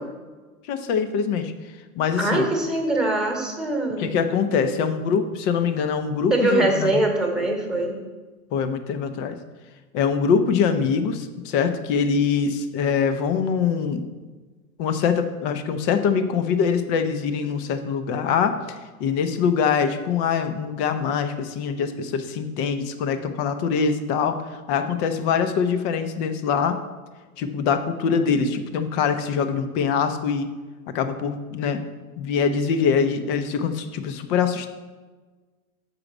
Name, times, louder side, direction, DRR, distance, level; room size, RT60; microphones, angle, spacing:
voice 1, 0.7-1.5 2.0-2.4 4.0-7.0 8.5-9.4 9.9-14.0 14.8-26.8 27.4-30.5 30.9-31.8 32.2-34.7, left 6 dB, 35° left, 9 dB, 0.8 m, -23 dB
voice 2, 2.2-4.1 6.3-8.0, right 2 dB, ahead, 1 dB, 1.4 m, -23 dB
6.8 x 4.9 x 6.0 m, 1.3 s
hypercardioid pair, 115°, 44 cm